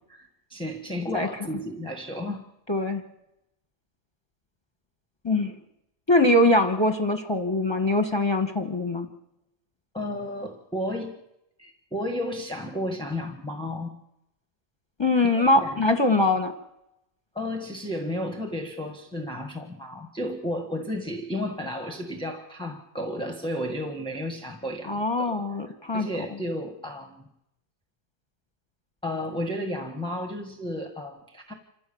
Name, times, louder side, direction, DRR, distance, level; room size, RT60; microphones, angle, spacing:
voice 1, 0.1-2.4 9.9-11.2 11.6-13.9 15.2-16.0 17.3-25.5 25.9-27.3 29.0-31.5, left 1 dB, 5° left, 4 dB, 1.5 m, -33 dB
voice 2, 2.7-3.0 5.2-5.5 6.1-9.1 15.0-16.5 24.9-26.1, left 2 dB, 20° left, 6 dB, 1.4 m, -22 dB
27.0 x 15.5 x 7.1 m, 0.87 s
omnidirectional pair, 1.3 m